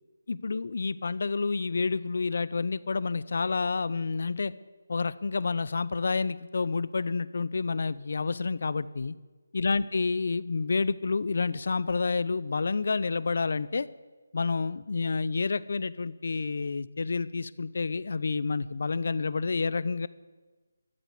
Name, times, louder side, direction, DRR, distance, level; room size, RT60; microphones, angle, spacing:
voice 1, 0.3-4.5 4.9-9.1 9.5-13.9 14.3-20.1, left 4 dB, 60° left, 18 dB, 0.6 m, -29 dB
13.0 x 8.0 x 9.3 m, 1.3 s
figure-of-eight pair, 160°, 0 cm